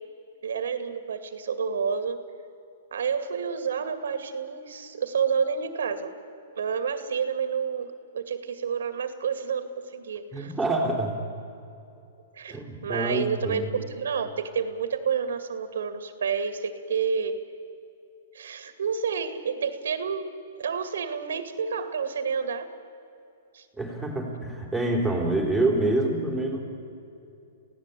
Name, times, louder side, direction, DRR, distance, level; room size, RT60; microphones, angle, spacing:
voice 1, 0.4-2.2 2.9-6.1 6.5-10.5 12.4-13.6 13.9-17.4 18.3-20.3 20.6-22.7 23.5-23.6, right 6 dB, 85° right, 9 dB, 2.2 m, -29 dB
voice 2, 10.3-11.1 12.5-13.7 23.8-26.6, right 2 dB, ahead, -3 dB, 4.0 m, -26 dB
27.0 x 16.5 x 8.4 m, 2.7 s
hypercardioid pair, 155°, 0 cm